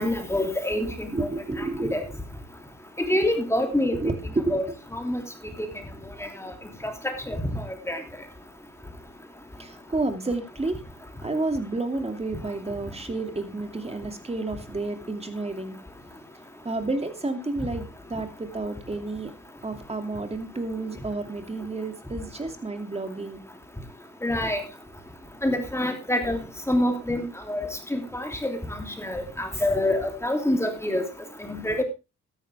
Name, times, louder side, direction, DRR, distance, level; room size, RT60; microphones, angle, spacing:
voice 1, 0.0-1.3 1.9-2.0 3.0-3.9 4.5-4.6 4.9-5.2 6.4-6.5 7.0-7.4 7.9-8.0 24.2-24.6 25.4-28.6 29.0-31.0 31.5-31.8, left 1 dB, 10° left, 5 dB, 3.0 m, -26 dB
voice 2, 1.1-2.2 3.7-4.8 9.6-10.8 11.2-15.8 16.6-17.8 18.1-19.3 19.6-23.4, right 2 dB, 20° right, 7 dB, 2.6 m, -30 dB
13.0 x 11.0 x 3.5 m, 0.27 s
cardioid pair, 90°, 30 cm